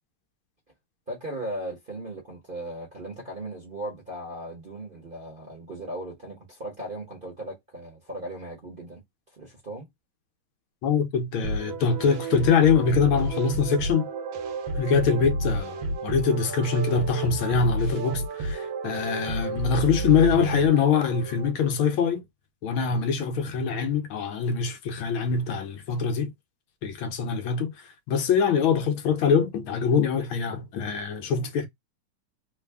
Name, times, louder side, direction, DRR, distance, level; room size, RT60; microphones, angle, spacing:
voice 1, 1.1-9.0 9.3-9.9, right 1 dB, 35° right, 0.9 m, -37 dB
voice 2, 10.8-14.1 14.8-22.3 22.6-26.3 26.8-31.7, left 6 dB, 75° left, 1.5 m, -24 dB
sound 1, 11.4-21.5, right 2 dB, 75° right, 1.5 m, -31 dB
3.9 x 2.2 x 3.4 m
omnidirectional pair, 2.3 m